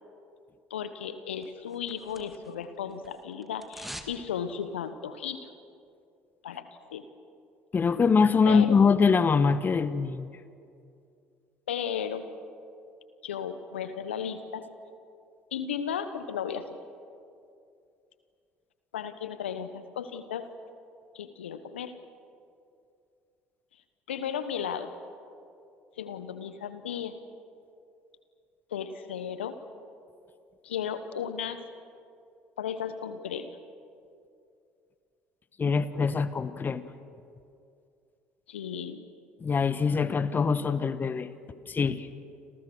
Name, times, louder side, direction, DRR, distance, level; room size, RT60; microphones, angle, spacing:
voice 1, 0.7-5.5 6.4-7.0 8.5-8.8 11.7-12.3 13.2-14.6 15.5-16.8 18.9-20.5 21.1-22.0 24.1-24.9 26.0-27.2 28.7-29.6 30.6-31.6 32.6-33.6 38.5-39.1, left 8 dB, 85° left, 11 dB, 1.2 m, -35 dB
sound 1, 1.4-2.7 2.9-4.2 4.5-4.6, equal, ahead, 2.4 m, -44 dB
voice 2, 7.7-10.3 35.6-36.8 39.4-41.3 41.7-42.1, left 5 dB, 30° left, 13 dB, 1.3 m, -23 dB
29.5 x 26.5 x 6.3 m, 2.5 s
hypercardioid pair, 60°, 6 cm